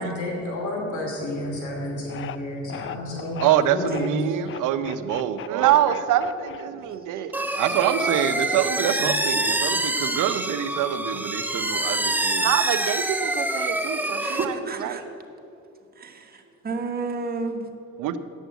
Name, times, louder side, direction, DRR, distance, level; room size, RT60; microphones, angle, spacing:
voice 1, 0.0-4.2, left 1 dB, 75° left, -1 dB, 2.6 m, -30 dB
sound 1, 2.1-2.4 2.7-3.5 3.9-4.1 4.4-7.0, left 10 dB, 45° left, 0.4 m, -37 dB
voice 2, 3.4-14.5 14.8-15.0 18.0-18.2, right 10 dB, 85° right, 11 dB, 0.7 m, -25 dB
voice 3, 7.1-7.6 9.0-9.1 11.8-12.0 13.6-15.0 16.0-17.7, right 3 dB, 30° right, 4 dB, 1.2 m, -33 dB
sound 2, 7.3-14.4, right 2 dB, 5° right, 0.7 m, -26 dB
9.1 x 7.3 x 8.1 m, 2.7 s
cardioid pair, 90°, 30 cm